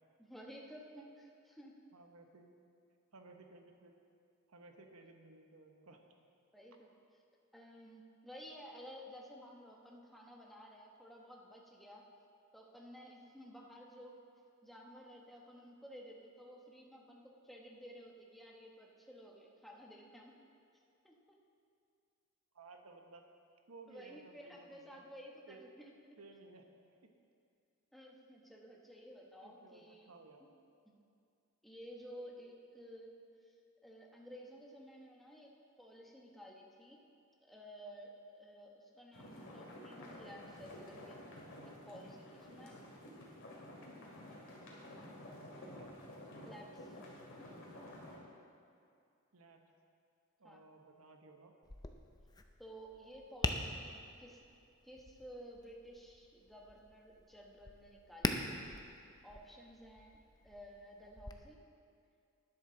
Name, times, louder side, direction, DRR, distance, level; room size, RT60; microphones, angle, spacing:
voice 1, 0.2-1.8 6.5-6.9 7.5-12.0 12.5-14.2 14.6-20.4 21.0-21.4 23.9-25.7 27.9-30.1 30.9-31.0 31.6-33.1 33.4-33.5 33.8-35.5 35.8-37.0 37.4-41.2 41.6-42.8 46.4-47.0 50.4-50.6 52.6-54.5 54.8-58.4 59.2-61.6, equal, ahead, -2 dB, 1.0 m, -54 dB
voice 2, 1.9-2.5 3.1-4.0 4.5-6.0 22.5-23.3 23.7-25.0 25.5-25.7 26.2-26.7 29.4-30.5 45.3-45.9 49.3-49.7 50.4-51.5, right 3 dB, 85° right, 4 dB, 1.0 m, -58 dB
sound 1, 39.1-48.2, left 1 dB, 65° left, 2.2 m, -51 dB
Tap, 51.6-61.3, left 2 dB, 20° left, 0.5 m, -44 dB
12.0 x 10.0 x 3.9 m, 2.5 s
head